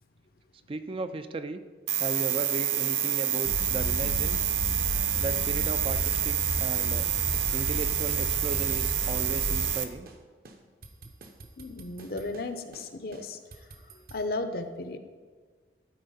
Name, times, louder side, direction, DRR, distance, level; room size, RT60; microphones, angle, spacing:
voice 1, 0.7-1.6 2.0-4.5 5.2-7.1 7.5-10.1, right 2 dB, 30° right, 10 dB, 0.4 m, -36 dB
sound 1, 1.9-9.8, right 10 dB, 85° right, 0.7 m, -28 dB
sound 2, 3.4-9.7, left 1 dB, 70° left, 1.1 m, -34 dB
sound 3, 6.4-7.5 7.7-9.8 10.1-10.2 10.5-12.5 12.7-12.9 13.1-14.2, right 2 dB, 50° right, 0.8 m, -49 dB
voice 2, 11.6-15.0, left 2 dB, 55° left, 8 dB, 0.7 m, -35 dB
12.5 x 4.4 x 5.5 m, 1.5 s
head